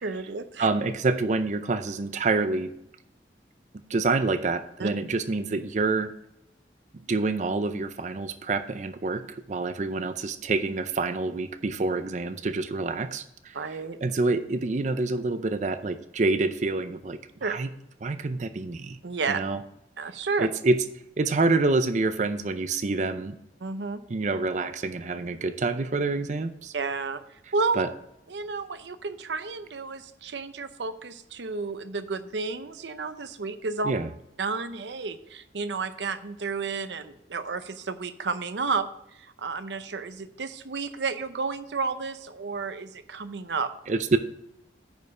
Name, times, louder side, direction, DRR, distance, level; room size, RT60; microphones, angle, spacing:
voice 1, 0.0-0.7 4.8-4.9 13.5-14.0 17.4-17.5 19.0-19.4 20.0-20.5 23.6-24.0 26.7-27.2 27.5-27.8 28.3-33.9 34.4-38.9 39.1-43.7, right 4 dB, 85° right, 11 dB, 0.7 m, -31 dB
voice 2, 0.6-2.7 3.9-6.1 6.9-17.7 18.0-19.0 19.3-19.6 20.4-20.8 21.2-23.4 24.1-26.7 27.8-27.9 33.8-34.1 43.9-44.2, right 3 dB, 45° right, 11 dB, 0.5 m, -27 dB
9.1 x 5.3 x 4.8 m, 0.82 s
head